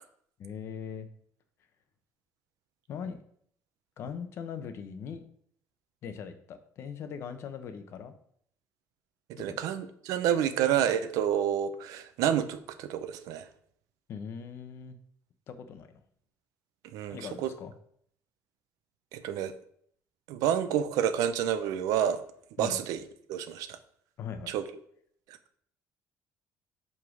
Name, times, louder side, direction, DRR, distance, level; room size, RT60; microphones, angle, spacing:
voice 1, 0.4-1.1 2.9-3.2 4.0-5.2 6.0-8.1 9.5-9.6 14.1-15.0 15.5-16.0 17.1-17.7 22.6-22.8 24.2-24.5, left 7 dB, 45° left, 9 dB, 0.8 m, -40 dB
voice 2, 9.3-13.5 16.9-17.5 19.1-19.5 20.3-22.2 22.6-23.0 23.3-23.8 24.5-24.6 25.3-25.4, right 9 dB, 85° right, 10 dB, 0.7 m, -29 dB
5.4 x 5.0 x 6.2 m, 0.64 s
cardioid pair, 175°, 6 cm